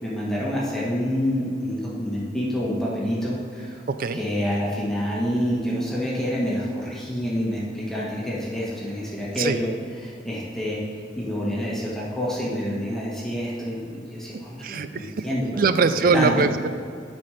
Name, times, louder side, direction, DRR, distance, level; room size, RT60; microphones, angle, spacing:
voice 1, 0.0-3.8 4.1-9.7 10.0-10.8 11.1-15.7 16.1-16.5, equal, 5° left, -6 dB, 1.5 m, -27 dB
voice 2, 3.9-4.2 9.4-9.6 14.3-15.2 15.6-16.7, right 4 dB, 50° right, 11 dB, 0.4 m, -22 dB
11.0 x 4.4 x 5.0 m, 2.3 s
head